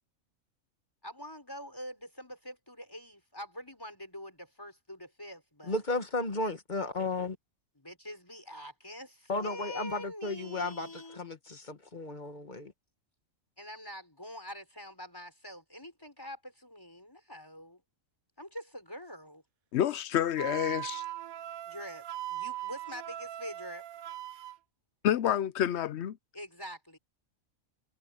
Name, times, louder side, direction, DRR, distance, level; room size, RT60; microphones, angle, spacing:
voice 1, 1.0-5.8 7.8-11.2 13.6-17.8 18.4-19.4 21.7-23.9 26.3-27.0, equal, 15° left, 5.6 m, -45 dB
voice 2, 5.7-7.4 9.3-12.7, left 2 dB, 35° left, 1.7 m, -34 dB
voice 3, 19.7-21.0 25.0-26.2, left 10 dB, 60° left, 0.8 m, -28 dB
Wind instrument woodwind instrument, 20.4-24.6, right 13 dB, 90° right, 1.2 m, -40 dB
omnidirectional pair, 1.4 m